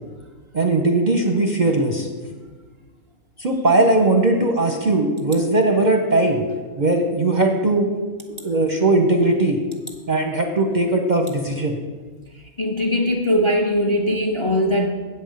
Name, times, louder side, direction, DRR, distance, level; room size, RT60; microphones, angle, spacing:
voice 1, 0.5-2.1 3.4-6.4 6.8-7.9 8.4-9.6 10.1-11.8, right 2 dB, 40° right, 2 dB, 0.7 m, -19 dB
voice 2, 12.6-14.9, left 1 dB, 25° left, 3 dB, 0.7 m, -20 dB
8.1 x 5.3 x 7.6 m, 1.4 s
omnidirectional pair, 1.5 m